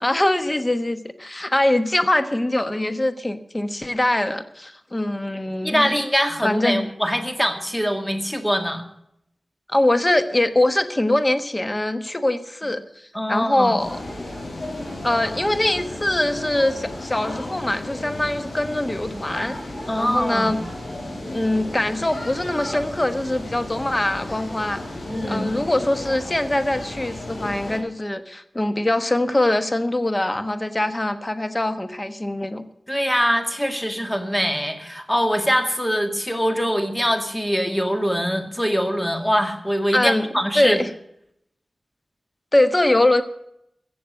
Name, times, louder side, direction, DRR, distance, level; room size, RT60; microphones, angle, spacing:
voice 1, 0.0-5.9 6.4-6.8 9.7-14.0 15.0-19.6 20.0-20.6 21.3-24.8 25.3-32.6 39.9-40.3 40.5-40.9 42.5-43.2, left 1 dB, 25° left, 9 dB, 1.2 m, -22 dB
voice 2, 5.6-8.8 13.1-13.8 19.9-20.6 25.1-25.5 32.9-40.8, equal, 10° left, 5 dB, 2.1 m, -23 dB
sound 1, 13.8-27.8, left 1 dB, 80° left, 6.3 m, -34 dB
15.5 x 7.3 x 9.1 m, 0.76 s
wide cardioid pair, 60°, 0 cm